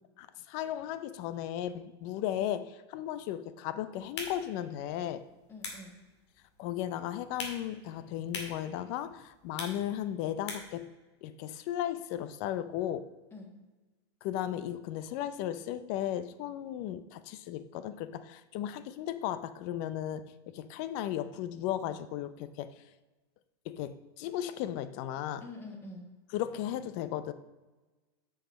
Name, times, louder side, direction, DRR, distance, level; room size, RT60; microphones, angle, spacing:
voice 1, 0.2-5.2 6.6-10.9 11.2-13.1 14.2-22.7 23.7-25.4 26.3-27.3, left 11 dB, 40° left, 13 dB, 0.5 m, -35 dB
sound 1, 4.0-10.9, left 3 dB, 90° left, 2.2 m, -45 dB
voice 2, 5.5-5.9 13.3-13.5 25.4-26.0, left 2 dB, 15° left, 2 dB, 1.3 m, -45 dB
7.1 x 5.8 x 5.1 m, 1.2 s
supercardioid pair, 165°, 14 cm